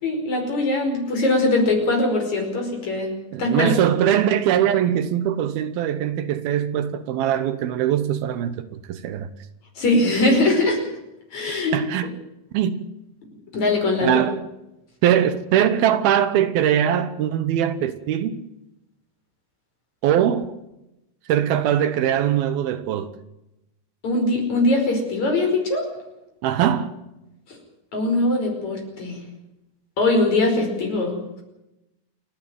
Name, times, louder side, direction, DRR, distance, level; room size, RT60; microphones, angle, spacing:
voice 1, 0.0-3.1 3.4-3.9 9.8-10.8 11.3-11.8 13.5-14.2 24.0-25.8 27.9-29.2 30.0-31.4, left 2 dB, 45° left, 6.4 m, -21 dB
voice 2, 3.3-9.3 11.7-12.1 12.5-12.8 14.0-14.5 15.0-18.4 20.0-20.6 21.3-23.1 26.4-26.9, right 10 dB, 75° right, 2.8 m, -21 dB
29.0 x 10.5 x 9.3 m
omnidirectional pair, 4.5 m